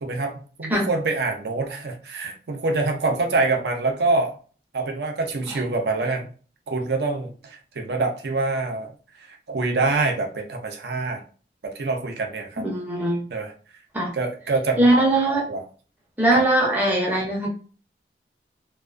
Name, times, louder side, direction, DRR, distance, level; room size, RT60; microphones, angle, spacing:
voice 1, 0.0-0.3 0.6-4.3 4.7-6.2 6.7-8.9 9.3-11.2 11.6-12.6 13.3-13.5 14.1-15.0 15.5-15.6 16.3-16.4, right 3 dB, 70° right, 3 dB, 0.5 m, -25 dB
voice 2, 12.6-13.2 13.9-14.1 14.8-15.4 16.2-17.5, right 1 dB, 10° right, -2 dB, 0.5 m, -20 dB
2.3 x 2.3 x 2.3 m, 0.40 s
head